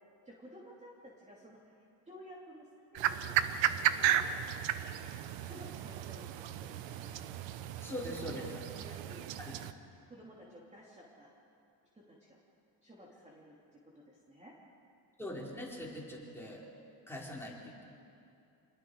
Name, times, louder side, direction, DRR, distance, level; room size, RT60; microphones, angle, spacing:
voice 1, 0.2-3.4 3.8-4.3 5.4-7.2 8.2-9.6 10.1-11.3 11.9-12.4 12.8-14.6, equal, 15° right, -5 dB, 3.0 m, -53 dB
sound 1, 2.9-9.7, right 11 dB, 75° right, 1.0 m, -34 dB
voice 2, 7.8-8.5 9.4-9.5 15.2-16.6 17.1-17.8, left 1 dB, 5° left, -4 dB, 4.3 m, -42 dB
27.5 x 20.5 x 4.8 m, 2.5 s
cardioid pair, 125°, 45 cm